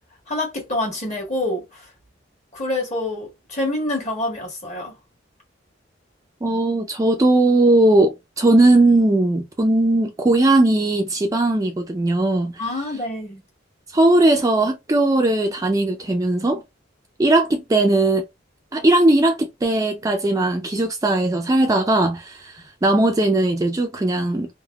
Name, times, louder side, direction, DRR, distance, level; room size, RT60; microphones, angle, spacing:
voice 1, 0.3-1.9 2.5-4.9 12.6-13.4, left 1 dB, 40° left, 1.2 m, -26 dB
voice 2, 6.4-12.6 13.9-16.6 17.2-18.2 18.7-24.5, right 2 dB, 20° right, 0.4 m, -18 dB
3.3 x 2.1 x 2.2 m
head